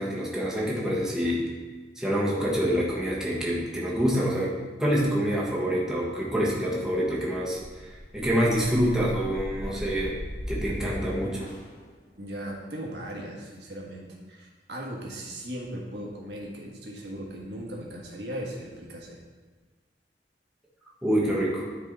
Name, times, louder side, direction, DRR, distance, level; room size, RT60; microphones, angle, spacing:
voice 1, 0.0-1.4 2.0-4.5 4.8-10.2 10.5-11.5 21.0-21.7, equal, 5° right, -5 dB, 1.4 m, -26 dB
brown noise filtersweep, 7.6-11.8, equal, 45° left, 1.4 m, -37 dB
voice 2, 12.2-19.2, equal, 65° right, -2 dB, 1.5 m, -38 dB
9.2 x 4.8 x 4.0 m, 1.4 s
head